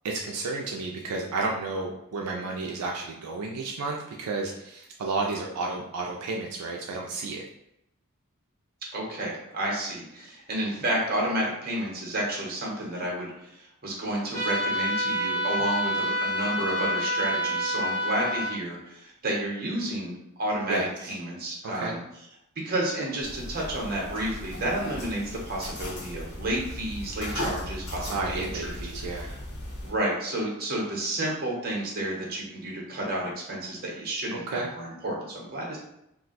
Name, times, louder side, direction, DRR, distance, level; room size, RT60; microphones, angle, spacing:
voice 1, 0.0-7.4 20.7-20.9 21.6-22.0 28.1-29.4 34.3-34.7, right 3 dB, 80° right, 0 dB, 0.4 m, -32 dB
voice 2, 8.9-22.0 22.6-28.7 29.1-29.4 29.8-35.8, right 1 dB, 45° right, -3 dB, 0.9 m, -31 dB
sound 1, 14.3-18.5, equal, 35° left, 0.7 m, -28 dB
sound 2, 23.2-29.9, left 1 dB, 75° left, 1.0 m, -37 dB
2.5 x 2.2 x 3.9 m, 0.82 s
head